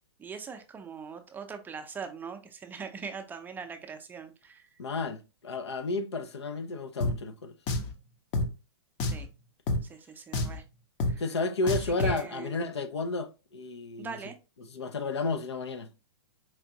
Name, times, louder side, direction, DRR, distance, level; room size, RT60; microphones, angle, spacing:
voice 1, 0.2-4.7 9.0-9.3 9.8-10.6 11.1-11.2 11.6-12.6 14.0-14.4, right 6 dB, 15° right, 0.5 m, -42 dB
voice 2, 4.8-7.5 11.2-14.2 14.6-15.9, left 3 dB, 80° left, 0.6 m, -32 dB
Drum, 7.0-7.1 7.7-7.9 8.3-8.5 9.0-9.3 9.7-9.8 10.3-10.6 11.0-11.1 11.7-12.2, left 2 dB, 40° left, 0.8 m, -28 dB
4.5 x 2.5 x 2.8 m
hypercardioid pair, 120°, 14 cm